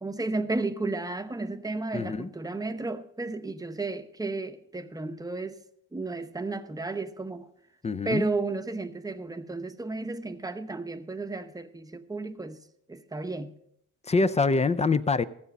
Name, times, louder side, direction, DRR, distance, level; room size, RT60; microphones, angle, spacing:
voice 1, 0.0-5.6 5.9-7.5 8.0-12.6 12.9-13.5, right 3 dB, 10° right, 0.8 m, -33 dB
voice 2, 1.9-2.3 7.8-8.2 14.0-15.2, left 3 dB, 20° left, 0.5 m, -25 dB
15.0 x 7.0 x 5.3 m
cardioid pair, 90°, 30 cm